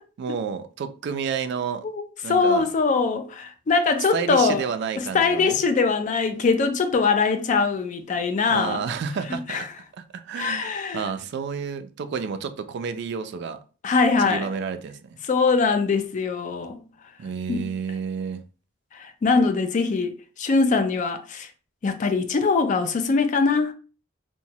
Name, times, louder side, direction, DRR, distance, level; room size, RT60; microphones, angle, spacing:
voice 1, 0.2-1.8 2.2-2.7 4.1-5.6 8.5-9.7 10.0-13.6 14.2-15.2 17.2-18.4, right 6 dB, 55° right, 0.3 m, -30 dB
voice 2, 1.8-4.6 5.0-8.8 9.5-9.6 10.4-11.1 13.8-14.5 15.2-16.8 17.5-17.7 18.9-21.5 21.8-23.7, left 4 dB, 40° left, 0.3 m, -22 dB
3.0 x 2.1 x 2.7 m
head